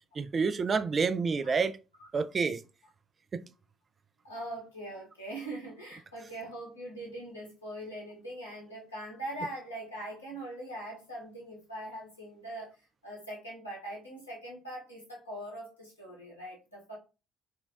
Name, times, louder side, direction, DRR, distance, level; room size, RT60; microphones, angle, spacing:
voice 1, 0.2-1.8 2.1-2.6 3.3-3.4, right 5 dB, 35° right, 0.3 m, -28 dB
voice 2, 4.2-12.8 13.0-17.0, right 1 dB, 90° left, 1.0 m, -42 dB
4.3 x 2.2 x 2.4 m
figure-of-eight pair, 50°, 0 cm